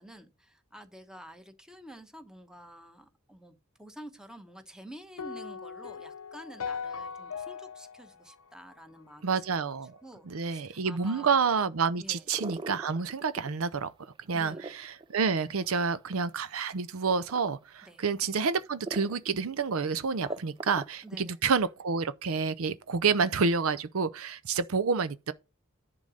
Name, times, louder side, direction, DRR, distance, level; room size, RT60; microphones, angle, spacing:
voice 1, 0.0-9.3 10.0-11.4 12.0-12.2 14.3-14.7 17.8-18.0 20.2-20.4 21.0-21.4, equal, 5° right, 1.1 m, -49 dB
sound 1, 5.2-9.5, left 6 dB, 90° left, 0.7 m, -40 dB
voice 2, 9.2-10.0 10.3-13.9 14.3-25.3, right 5 dB, 75° right, 0.6 m, -29 dB
sound 2, 12.3-13.7 14.0-16.3 17.1-17.5 18.1-18.2 18.9-19.3 19.6-19.7 20.0-21.1, right 2 dB, 20° right, 0.5 m, -40 dB
10.5 x 3.9 x 6.4 m
head